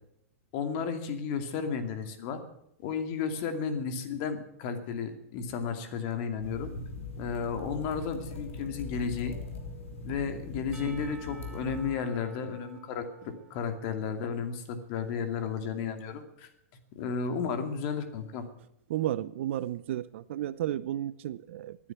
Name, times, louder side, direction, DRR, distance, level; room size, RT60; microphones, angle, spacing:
voice 1, 0.5-2.4 2.8-6.7 7.2-9.4 10.0-16.5 17.0-18.4, left 6 dB, 45° left, 7 dB, 2.5 m, -33 dB
sound 1, 6.4-12.0, left 3 dB, 65° left, 3.2 m, -41 dB
Percussion / Church bell, 10.7-14.7, right 4 dB, 15° right, 2.4 m, -53 dB
voice 2, 18.9-21.8, right 12 dB, 55° right, 18 dB, 0.7 m, -33 dB
14.0 x 9.8 x 9.2 m, 0.77 s
figure-of-eight pair, 100°, 8 cm